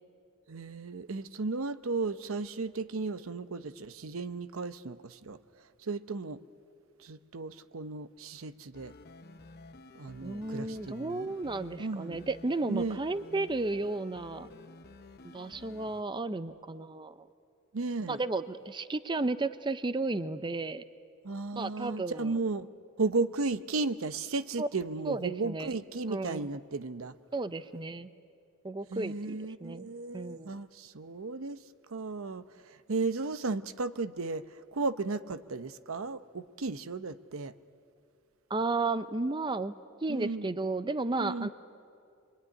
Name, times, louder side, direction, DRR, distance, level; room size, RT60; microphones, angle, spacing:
voice 1, 0.5-5.4 5.8-6.4 7.0-8.9 9.9-11.3 11.8-12.2 12.7-13.0 17.7-18.2 21.2-22.7 23.0-27.1 28.9-31.6 31.9-37.5 40.1-40.5 41.2-41.5, right 3 dB, 75° right, 0.8 m, -35 dB
sound 1, 8.7-16.0, left 2 dB, 50° left, 0.9 m, -52 dB
voice 2, 10.2-14.5 15.2-17.3 18.1-20.8 21.5-22.4 24.6-24.7 25.0-25.7 26.1-26.4 27.3-28.1 28.6-30.5 38.5-39.7 40.0-41.5, right 3 dB, 20° right, 0.6 m, -33 dB
26.0 x 22.5 x 9.8 m
head